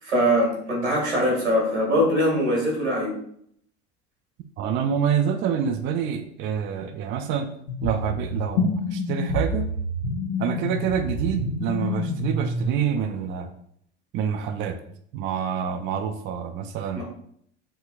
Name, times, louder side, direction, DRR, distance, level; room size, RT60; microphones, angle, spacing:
voice 1, 0.0-3.1 16.9-17.0, equal, 85° right, -2 dB, 1.4 m, -22 dB
voice 2, 4.6-7.5 7.8-9.7 10.4-13.5 14.1-14.8 15.1-17.0, right 8 dB, 35° right, 7 dB, 0.4 m, -27 dB
sound 1, 7.7-12.7, left 2 dB, 50° left, 0.9 m, -28 dB
4.7 x 2.8 x 2.3 m, 0.67 s
figure-of-eight pair, 65°, 34 cm